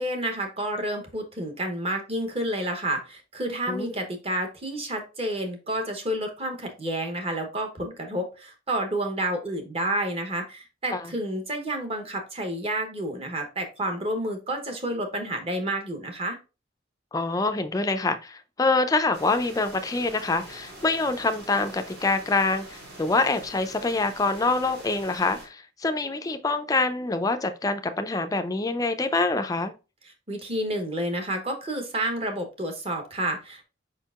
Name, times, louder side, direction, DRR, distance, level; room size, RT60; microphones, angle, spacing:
voice 1, 0.0-16.4 30.3-33.6, right 1 dB, 30° right, 0.9 m, -30 dB
voice 2, 17.1-29.7, left 3 dB, 20° left, 0.4 m, -25 dB
sound 1, 19.1-25.5, right 2 dB, 60° right, 1.8 m, -44 dB
5.0 x 4.5 x 2.4 m
head